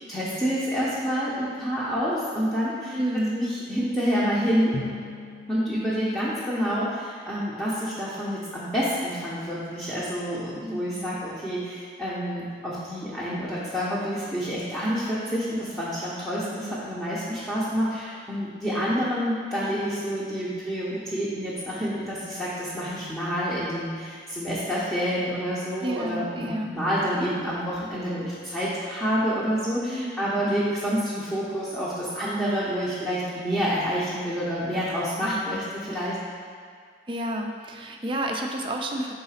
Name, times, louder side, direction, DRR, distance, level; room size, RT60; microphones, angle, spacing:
voice 1, 0.1-4.7 5.5-36.2, equal, 5° left, -10 dB, 0.8 m, -28 dB
voice 2, 2.9-3.5 10.6-11.2 25.8-26.8 29.8-30.2 35.2-35.6 37.1-39.1, right 1 dB, 30° right, 1 dB, 0.5 m, -31 dB
Drum, 4.7-7.4, left 1 dB, 85° left, 0.8 m, -40 dB
4.8 x 3.9 x 5.7 m, 2.1 s
head